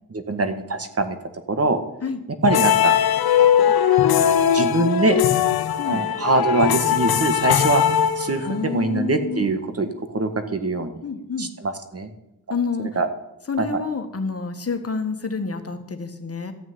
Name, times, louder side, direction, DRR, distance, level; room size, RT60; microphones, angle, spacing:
voice 1, 0.1-1.2 1.5-1.8 2.4-2.9 3.3-3.7 4.5-5.2 5.9-7.8 8.2-11.0 11.4-12.1 12.9-13.1 13.6-13.8, right 3 dB, 40° right, 8 dB, 1.6 m, -23 dB
sound 1, 2.4-8.7, left 9 dB, 90° left, 0.9 m, -19 dB
voice 2, 5.8-6.1 8.4-9.5 11.0-11.5 12.5-13.0 13.5-16.5, left 4 dB, 40° left, 7 dB, 1.7 m, -28 dB
14.0 x 6.2 x 9.5 m, 0.90 s
cardioid pair, 65°, 36 cm